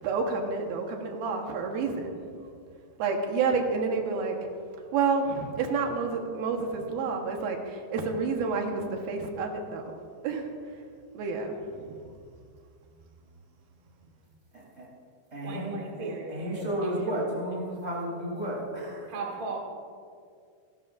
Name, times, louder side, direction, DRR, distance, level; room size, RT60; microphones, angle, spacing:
voice 1, 0.0-2.2 3.0-4.4 4.9-9.9 10.2-10.5 11.1-12.1, right 4 dB, 85° right, 2 dB, 3.2 m, -29 dB
voice 2, 14.5-14.9 15.3-19.1, right 1 dB, 20° right, -4 dB, 3.5 m, -33 dB
voice 3, 15.4-17.1 19.1-19.6, right 3 dB, 55° right, 1 dB, 1.0 m, -37 dB
28.0 x 12.5 x 2.6 m, 2.2 s
omnidirectional pair, 4.2 m